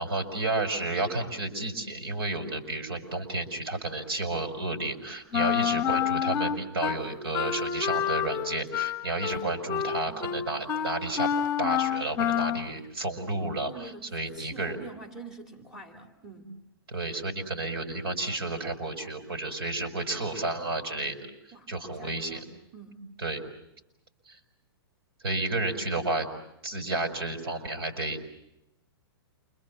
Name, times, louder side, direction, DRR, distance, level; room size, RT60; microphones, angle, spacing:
voice 1, 0.0-11.3 11.6-13.7 14.1-14.8 16.9-21.2 21.7-22.4 23.2-23.4 24.3-24.4 25.2-26.3 26.6-28.3, right 2 dB, 85° right, 5 dB, 5.9 m, -31 dB
Wind instrument woodwind instrument, 5.3-7.0 7.3-12.7, left 9 dB, 20° left, 1.2 m, -28 dB
voice 2, 10.1-10.5 13.7-16.6 21.5-23.1, right 3 dB, 5° right, 4 dB, 2.7 m, -46 dB
28.5 x 25.0 x 7.4 m, 0.84 s
hypercardioid pair, 155°, 13 cm